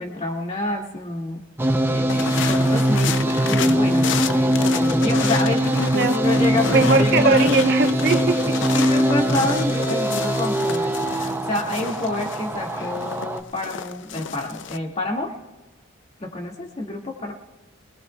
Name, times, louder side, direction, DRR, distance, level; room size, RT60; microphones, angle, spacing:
voice 1, 0.0-1.5 1.9-7.5 7.8-8.0 8.7-15.3 16.2-17.3, left 2 dB, 30° left, -1 dB, 2.1 m, -28 dB
sound 1, 1.6-13.4, equal, 10° right, 0.6 m, -21 dB
sound 2, 2.1-14.8, left 7 dB, 60° left, 0.5 m, -31 dB
voice 2, 6.7-8.6, right 3 dB, 50° right, 5 dB, 1.0 m, -20 dB
25.0 x 19.0 x 2.4 m, 1.2 s
head